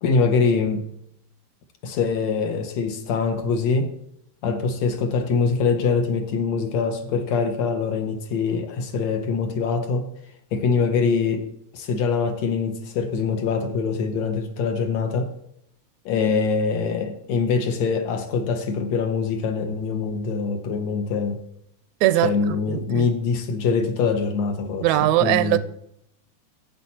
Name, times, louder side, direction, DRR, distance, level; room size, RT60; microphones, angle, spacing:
voice 1, 0.0-0.9 1.8-3.9 4.4-10.1 10.5-15.3 16.1-21.4 22.2-25.6, left 5 dB, 70° left, 2.3 m, -24 dB
voice 2, 22.0-22.3 22.7-23.1 24.8-25.6, right 15 dB, 80° right, 1.8 m, -20 dB
10.5 x 8.4 x 4.2 m
omnidirectional pair, 3.3 m